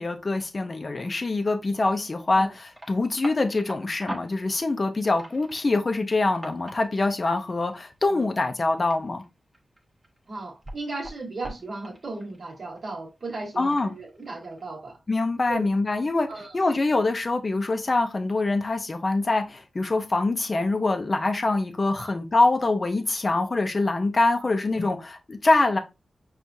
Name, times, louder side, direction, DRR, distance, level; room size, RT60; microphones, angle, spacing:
voice 1, 0.0-9.2 13.6-13.9 15.1-16.3 16.5-25.8, left 2 dB, 35° left, 0.5 m, -24 dB
sound 1, 2.5-8.1 8.5-10.4 10.6-12.8 13.4-14.7, right 1 dB, 15° right, 1.1 m, -42 dB
voice 2, 10.3-15.0 15.5-15.7 16.3-16.6 22.0-22.1 24.4-24.5, right 2 dB, 50° right, 1.3 m, -36 dB
6.1 x 2.3 x 2.7 m
wide cardioid pair, 130°, 0 cm